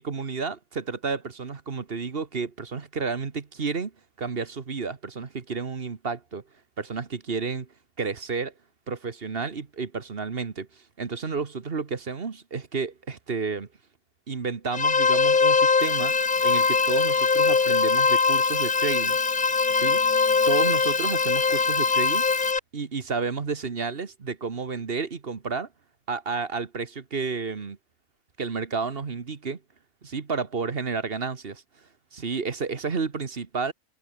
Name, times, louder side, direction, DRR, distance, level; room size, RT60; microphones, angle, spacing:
voice 1, 0.0-3.9 4.2-6.4 6.8-7.7 8.0-8.5 8.9-13.7 14.3-19.2 19.7-20.0 20.5-22.3 22.7-25.7 26.1-27.8 28.4-29.6 30.0-31.6 32.1-33.7, right 5 dB, 40° right, 1.6 m, -31 dB
sound 1, 14.7-22.6, left 5 dB, 35° left, 1.3 m, -22 dB
sound 2, 15.8-22.5, left 1 dB, 10° left, 2.3 m, -40 dB
omnidirectional pair, 1.5 m